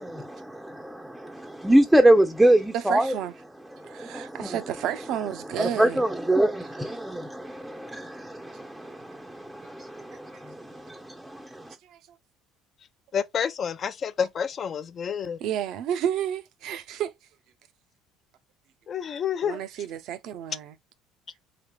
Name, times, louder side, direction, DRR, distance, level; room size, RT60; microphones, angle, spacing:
voice 1, 0.0-3.1 3.8-4.6 5.6-11.7, right 1 dB, 5° right, 0.5 m, -24 dB
voice 2, 2.7-3.3 3.8-6.0 8.8-8.9 10.7-10.8 11.8-12.0 15.4-17.1 19.4-20.7, right 10 dB, 65° right, 0.5 m, -31 dB
voice 3, 13.1-15.4 18.9-19.7, left 7 dB, 45° left, 0.5 m, -29 dB
3.3 x 3.3 x 2.2 m
supercardioid pair, 80°, 0 cm